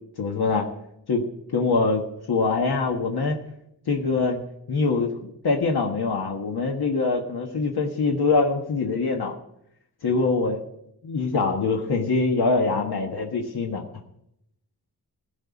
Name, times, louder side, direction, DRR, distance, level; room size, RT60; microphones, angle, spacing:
voice 1, 0.2-0.7 1.1-3.4 3.9-4.4 4.7-9.3 10.0-10.6 11.0-13.8, left 4 dB, 75° left, 1 dB, 1.4 m, -24 dB
16.0 x 5.5 x 8.5 m, 0.78 s
wide cardioid pair, 115°, 39 cm